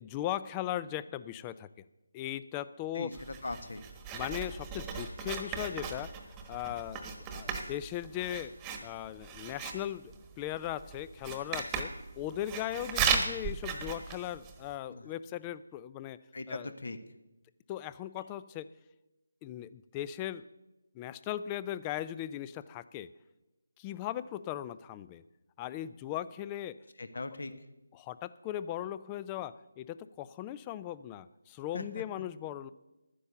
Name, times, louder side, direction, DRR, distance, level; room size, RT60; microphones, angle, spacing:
voice 1, 0.0-1.7 2.1-3.1 4.1-6.1 6.5-8.5 8.8-16.2 16.5-16.7 17.7-18.7 19.4-20.5 20.9-23.1 23.8-25.2 25.6-26.8 27.9-32.7, left 12 dB, 15° left, 16 dB, 0.4 m, -38 dB
voice 2, 2.9-3.8 14.9-15.1 16.3-17.0 27.0-27.5 31.7-32.0, left 2 dB, 65° left, 11 dB, 1.4 m, -40 dB
Writing, 3.1-14.7, right 6 dB, 15° right, 1.2 m, -37 dB
11.5 x 10.0 x 6.9 m, 1.0 s
figure-of-eight pair, 160°, 0 cm